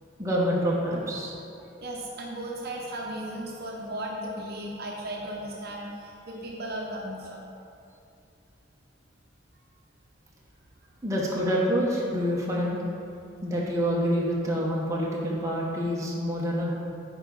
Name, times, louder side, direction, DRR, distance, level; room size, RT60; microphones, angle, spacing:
voice 1, 0.2-1.3 11.0-12.8 13.4-16.7, equal, 15° right, -5 dB, 1.1 m, -27 dB
voice 2, 1.2-7.6, right 1 dB, 55° right, -2 dB, 0.9 m, -36 dB
8.8 x 4.9 x 4.0 m, 2.6 s
head